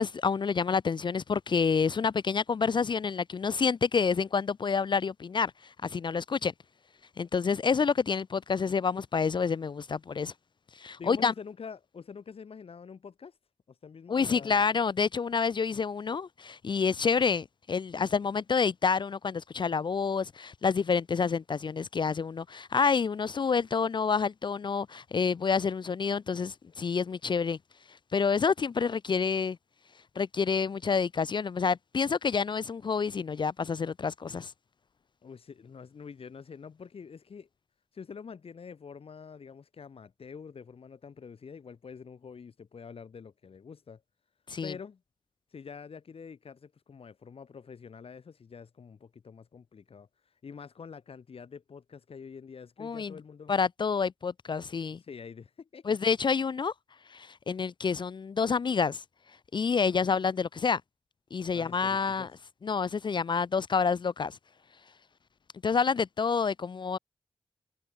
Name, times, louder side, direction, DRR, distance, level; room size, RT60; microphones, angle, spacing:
voice 1, 0.0-6.5 7.2-10.3 10.8-11.3 14.1-27.6 28.1-29.6 30.2-34.5 44.5-44.7 52.8-53.1 53.5-55.0 55.9-56.7 57.1-59.0 59.5-60.8 61.3-62.3 62.6-64.4 65.6-67.0, left 5 dB, 55° left, 0.4 m, -28 dB
voice 2, 11.0-13.4 13.7-14.6 35.2-37.5 37.9-44.0 44.6-45.0 45.5-53.5 55.0-56.0 61.5-62.3, left 6 dB, 80° left, 5.1 m, -46 dB
cardioid pair, 55°, 10 cm